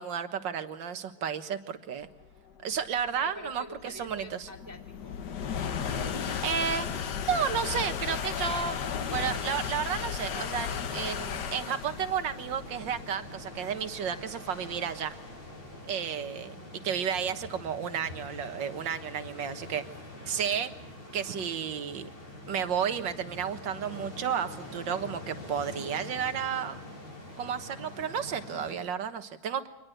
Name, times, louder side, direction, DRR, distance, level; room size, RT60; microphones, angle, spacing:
voice 1, 0.0-2.1 2.6-4.5 6.4-6.9 7.3-8.8 9.1-15.1 15.9-19.8 20.3-20.7 21.1-22.1 22.5-26.8 27.4-29.7, right 8 dB, 60° right, 9 dB, 1.9 m, -32 dB
sound 1, 2.4-15.7, left 7 dB, 60° left, 1.5 m, -35 dB
voice 2, 3.1-5.2 5.9-6.3 15.7-16.3, equal, 10° right, 2 dB, 2.1 m, -47 dB
sound 2, 10.7-28.7, left 1 dB, 80° left, 6.8 m, -45 dB
24.0 x 20.5 x 7.9 m, 0.91 s
omnidirectional pair, 2.3 m